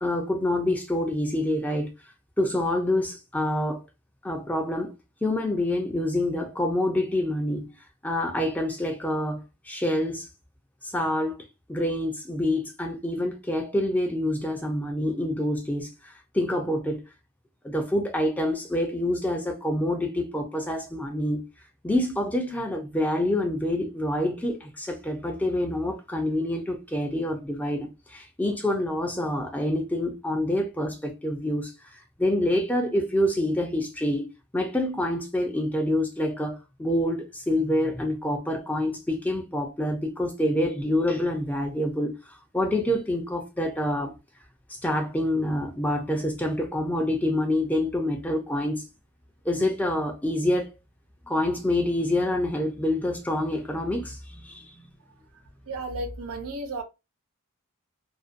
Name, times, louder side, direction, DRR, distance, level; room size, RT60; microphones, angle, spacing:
voice 1, 0.0-1.9 2.4-3.8 4.2-4.9 5.2-7.7 8.0-10.3 10.8-11.4 11.7-17.0 17.6-21.4 21.8-31.7 32.2-42.1 42.5-44.1 44.8-48.8 49.5-50.7 51.3-54.9, left 1 dB, 5° left, 0.3 m, -27 dB
voice 2, 55.7-56.8, right 2 dB, 75° right, 0.5 m, -33 dB
2.5 x 2.2 x 2.4 m
head